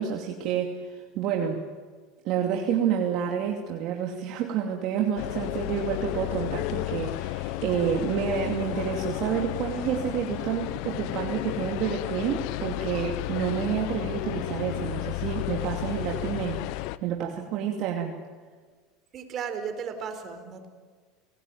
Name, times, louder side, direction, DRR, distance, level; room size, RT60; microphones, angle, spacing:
voice 1, 0.0-1.6 2.2-16.6 17.0-18.2, right 8 dB, 55° right, 1 dB, 2.7 m, -29 dB
sound 1, 5.2-17.0, left 17 dB, 65° left, 1.0 m, -32 dB
voice 2, 19.1-20.7, right 6 dB, 40° right, 7 dB, 4.4 m, -35 dB
29.0 x 18.0 x 9.4 m, 1.5 s
supercardioid pair, 115°, 0 cm